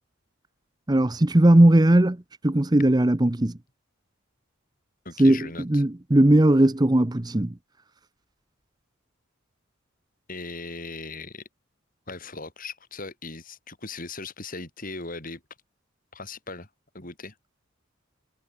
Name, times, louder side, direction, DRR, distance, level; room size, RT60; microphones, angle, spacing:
voice 1, 0.9-2.2 2.4-3.6 5.2-7.5, right 1 dB, 20° right, 0.7 m, -18 dB
voice 2, 5.1-5.8 10.3-11.4 12.1-15.4 16.1-16.7 16.9-17.3, left 3 dB, 40° left, 5.5 m, -38 dB
head